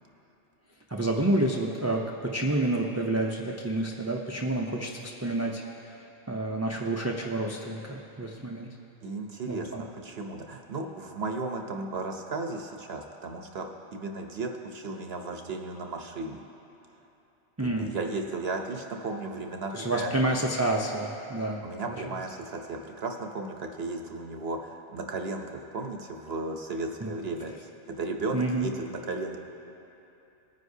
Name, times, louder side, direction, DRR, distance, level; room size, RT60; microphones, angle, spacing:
voice 1, 0.9-6.0 6.3-8.8 9.5-9.8 17.6-18.0 19.7-21.9 27.0-27.1 28.3-28.7, right 2 dB, 20° right, -1 dB, 0.4 m, -29 dB
voice 2, 9.0-9.7 10.0-13.7 13.9-16.4 17.6-20.1 21.6-27.5 27.9-29.4, right 3 dB, 65° right, 3 dB, 0.9 m, -35 dB
19.5 x 9.5 x 2.7 m, 3.0 s
omnidirectional pair, 1.2 m